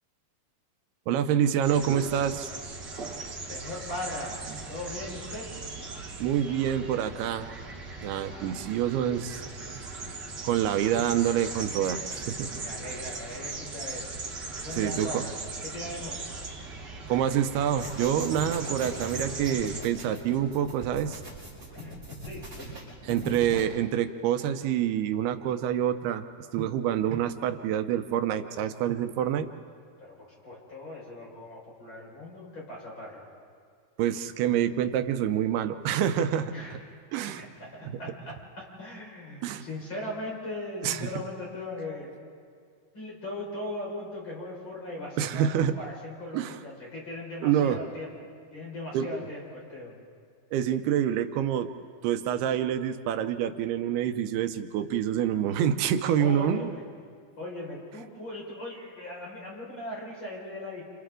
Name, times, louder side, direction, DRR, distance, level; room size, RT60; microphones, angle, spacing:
voice 1, 1.1-2.6 6.2-7.5 8.0-9.4 10.4-12.6 14.8-15.2 17.1-21.2 23.0-26.2 26.5-29.5 34.0-36.5 37.1-37.4 39.4-39.7 40.8-41.1 45.2-45.7 46.3-46.5 47.4-47.8 48.9-49.1 50.5-51.7 52.0-56.7, right 10 dB, 90° right, 9 dB, 2.8 m, -27 dB
sound 1, 1.6-19.8, right 3 dB, 35° right, 1.8 m, -39 dB
voice 2, 3.5-4.4 4.7-5.5 8.3-8.5 12.6-14.1 14.6-15.3 15.6-16.3 21.7-22.5 30.0-33.3 36.5-36.8 37.4-42.2 42.9-50.0 56.2-56.8 57.4-60.9, left 1 dB, 30° left, -4 dB, 5.9 m, -39 dB
sound 2, 17.8-23.6, equal, 20° right, 8.0 m, -41 dB
29.0 x 28.5 x 3.8 m, 2.1 s
omnidirectional pair, 4.4 m